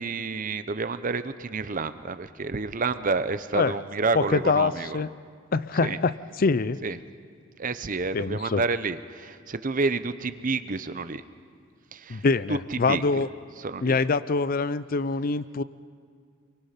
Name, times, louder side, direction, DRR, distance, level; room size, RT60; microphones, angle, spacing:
voice 1, 0.0-5.0 5.8-6.0 6.8-7.0 7.6-11.2 11.9-13.2 13.6-14.0, right 4 dB, 40° right, 12 dB, 0.8 m, -29 dB
voice 2, 4.1-5.1 5.5-6.8 8.1-8.6 12.1-13.3 13.8-15.6, left 4 dB, 45° left, 16 dB, 0.5 m, -25 dB
29.0 x 23.5 x 5.8 m, 2.1 s
head